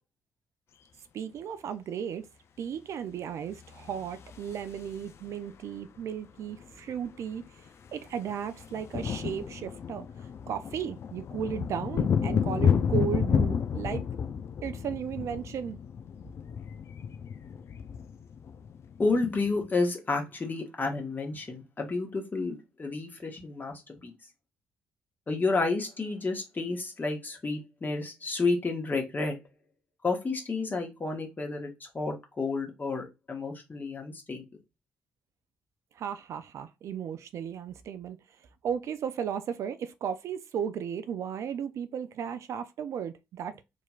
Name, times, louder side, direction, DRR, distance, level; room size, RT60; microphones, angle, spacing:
voice 1, 1.1-2.2 2.6-7.4 7.9-10.1 10.5-14.0 14.6-15.8 36.0-38.2 38.6-43.6, right 8 dB, 55° right, 0.3 m, -35 dB
sound 1, 3.7-5.3 6.6-6.7 6.9-7.1 7.4-19.5, left 7 dB, 50° left, 0.4 m, -31 dB
voice 2, 19.0-24.1 25.3-29.3 30.0-34.4, left 3 dB, 30° left, 1.2 m, -31 dB
2.9 x 2.8 x 2.3 m
hypercardioid pair, 40°, 6 cm